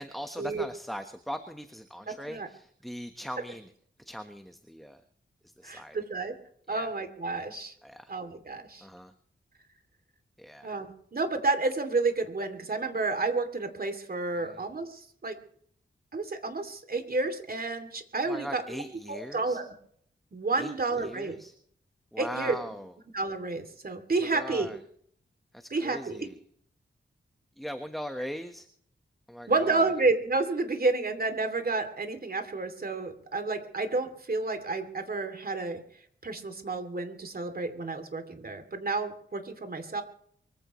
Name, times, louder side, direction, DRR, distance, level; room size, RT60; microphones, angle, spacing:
voice 1, 0.0-3.7 4.0-5.0 5.6-6.0 6.7-6.9 7.8-8.1 8.8-9.1 10.4-10.7 14.4-14.6 18.2-19.6 20.6-20.7 21.0-21.5 22.1-22.9 24.3-24.8 25.5-26.3 27.6-28.7 29.3-29.9, equal, ahead, 7 dB, 1.3 m, -40 dB
voice 2, 2.1-2.5 5.6-6.3 6.7-7.7 8.1-8.9 10.6-15.4 16.1-18.8 19.1-19.7 20.3-21.4 22.2-22.6 23.1-24.7 25.7-26.3 29.5-35.8 36.2-40.0, right 3 dB, 50° right, 7 dB, 2.8 m, -30 dB
24.0 x 15.5 x 3.2 m, 0.63 s
wide cardioid pair, 80°, 20 cm